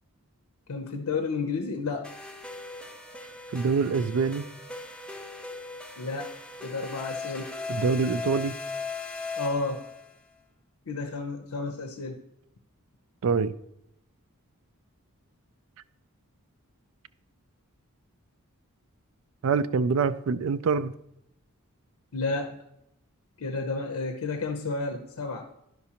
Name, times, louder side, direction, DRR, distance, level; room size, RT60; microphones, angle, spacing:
voice 1, 0.7-2.1 6.0-6.3 6.6-7.5 9.4-9.8 10.9-12.2 22.1-22.6 23.4-25.5, left 3 dB, 90° left, 0.7 m, -31 dB
sound 1, 2.0-10.1, left 4 dB, 5° left, 0.4 m, -38 dB
voice 2, 3.5-4.4 7.7-8.5 13.2-13.5 19.4-20.9, right 5 dB, 70° right, 0.4 m, -25 dB
10.5 x 6.0 x 2.8 m
head